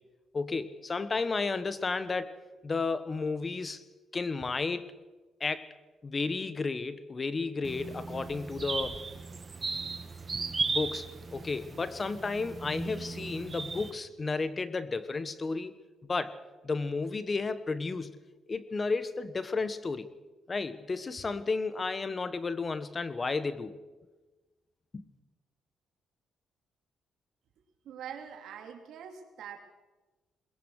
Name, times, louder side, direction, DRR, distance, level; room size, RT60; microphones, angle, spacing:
voice 1, 0.3-2.4 2.6-3.8 4.1-4.9 5.4-5.7 6.0-9.1 10.7-15.7 16.1-18.2 18.5-20.1 20.5-23.8 24.9-25.1, left 4 dB, 30° left, 14 dB, 1.3 m, -33 dB
sound 1, 7.6-13.9, right 4 dB, 35° right, 1.8 m, -36 dB
voice 2, 27.8-29.6, right 8 dB, 75° right, 5 dB, 3.0 m, -44 dB
21.5 x 21.5 x 6.5 m, 1.2 s
cardioid pair, 90°, 0 cm